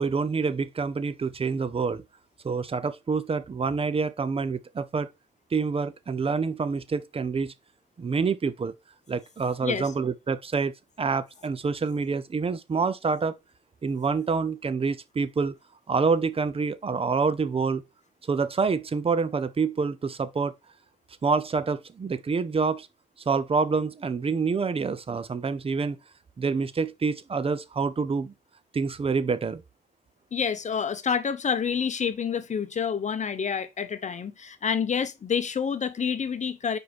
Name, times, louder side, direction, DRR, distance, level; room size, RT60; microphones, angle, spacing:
voice 1, 0.0-2.0 2.4-5.1 5.5-7.5 8.0-8.7 9.1-13.4 13.8-15.5 15.9-17.8 18.3-20.5 21.2-22.9 23.3-26.0 26.4-28.3 28.7-29.6, right 5 dB, 30° right, 0.6 m, -27 dB
voice 2, 9.6-9.9 30.3-36.8, left 7 dB, 35° left, 0.8 m, -28 dB
4.9 x 4.8 x 4.2 m
cardioid pair, 90°, 20 cm